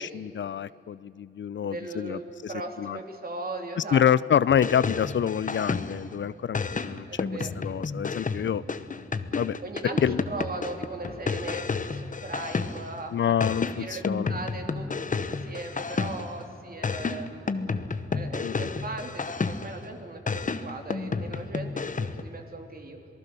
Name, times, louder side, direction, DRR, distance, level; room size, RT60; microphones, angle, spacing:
voice 1, 0.0-2.5 2.8-3.0 3.9-7.3 7.6-9.6 10.0-10.2 13.1-14.3 18.4-18.7, left 9 dB, 65° left, 19 dB, 0.5 m, -27 dB
voice 2, 1.6-2.2 2.5-4.0 7.1-7.5 9.6-13.3 13.8-17.7 18.1-23.0, right 2 dB, 45° right, 4 dB, 3.2 m, -38 dB
sound 1, 4.5-6.1 6.5-13.0 13.4-16.4 16.8-19.8 20.3-22.3, left 4 dB, 40° left, 1.1 m, -31 dB
27.5 x 19.0 x 6.8 m, 2.9 s
wide cardioid pair, 95°, 21 cm